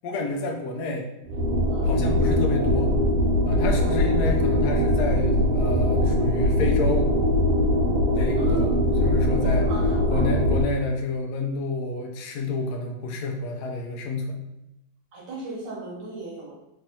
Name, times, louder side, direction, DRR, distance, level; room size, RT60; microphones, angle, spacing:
voice 1, 0.0-1.1 1.8-2.9 3.4-7.1 8.2-9.7 10.1-14.4, left 3 dB, 75° left, 2 dB, 0.9 m, -29 dB
sound 1, 1.3-10.6, left 1 dB, 80° right, 1.5 m, -22 dB
voice 2, 8.3-8.8 9.4-10.3 15.1-16.5, right 2 dB, 65° right, -4 dB, 1.4 m, -34 dB
3.5 x 3.3 x 2.7 m, 0.88 s
omnidirectional pair, 2.3 m